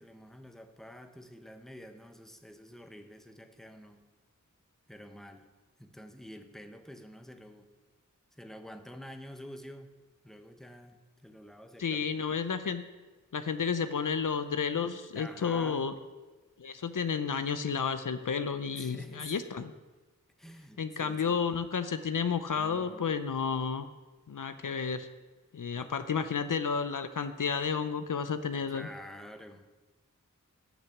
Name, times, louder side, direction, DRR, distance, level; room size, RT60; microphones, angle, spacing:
voice 1, 0.0-4.0 4.9-5.5 5.8-7.7 8.3-9.9 10.2-12.2 15.1-15.9 18.7-19.5 20.4-21.4 22.5-23.2 25.7-25.9 28.7-29.6, equal, ahead, 6 dB, 0.9 m, -48 dB
voice 2, 11.8-12.8 13.3-15.9 16.6-19.7 20.8-23.8 24.3-25.1 25.5-28.9, left 6 dB, 70° left, 10 dB, 0.6 m, -31 dB
8.8 x 6.6 x 7.2 m, 1.2 s
wide cardioid pair, 45°, 32 cm